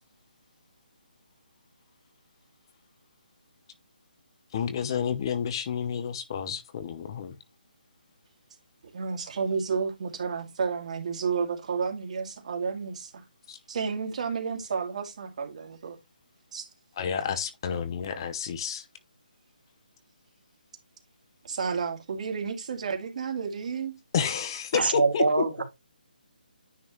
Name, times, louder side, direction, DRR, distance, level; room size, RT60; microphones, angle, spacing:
voice 1, 4.5-7.4 13.5-13.6 17.0-18.8 24.1-25.4, left 7 dB, 30° left, 0.8 m, -30 dB
voice 2, 8.9-13.1 13.7-16.0 16.5-16.7 21.4-24.0, right 5 dB, 45° right, 2.3 m, -31 dB
voice 3, 24.7-25.6, right 3 dB, 90° right, 2.2 m, -24 dB
9.6 x 5.3 x 3.1 m
hypercardioid pair, 165°, 5 cm